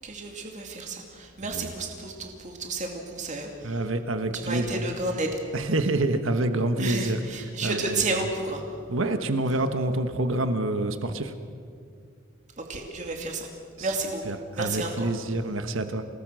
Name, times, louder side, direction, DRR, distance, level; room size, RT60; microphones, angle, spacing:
voice 1, 0.0-3.8 4.3-5.4 6.8-8.8 12.6-13.5 13.8-15.1, right 3 dB, 40° right, 2 dB, 2.5 m, -32 dB
voice 2, 3.6-4.8 5.5-7.2 7.6-8.0 8.9-11.3 13.8-13.9 14.3-16.1, right 2 dB, 85° right, 9 dB, 1.3 m, -27 dB
28.5 x 19.0 x 6.3 m, 2.2 s
head